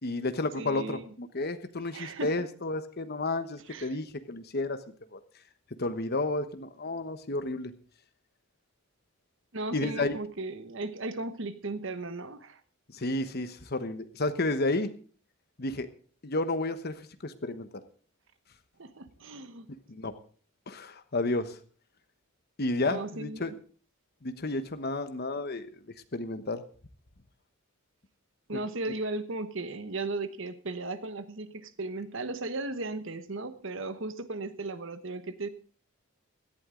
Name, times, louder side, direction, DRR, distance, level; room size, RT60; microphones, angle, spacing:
voice 1, 0.0-4.8 5.1-5.2 5.8-7.7 9.7-10.2 12.9-14.9 15.6-15.9 16.2-16.9 17.2-17.7 19.9-20.1 20.7-21.6 22.6-23.5 24.2-25.8 26.1-26.6 28.5-28.6, left 2 dB, 50° left, 10 dB, 1.1 m, -31 dB
voice 2, 0.6-1.1 1.9-2.4 3.7-4.0 9.5-12.6 18.8-19.7 22.8-23.5 28.5-35.5, right 2 dB, 60° right, 12 dB, 1.1 m, -36 dB
17.5 x 11.5 x 3.8 m, 0.42 s
head